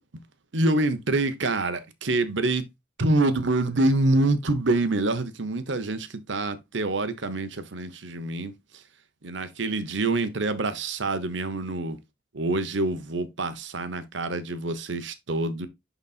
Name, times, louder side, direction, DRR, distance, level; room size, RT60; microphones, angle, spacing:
voice 1, 0.5-2.6 3.0-8.5 9.2-12.0 12.3-15.7, right 2 dB, 65° right, 1.0 m, -26 dB
11.0 x 4.1 x 2.4 m
head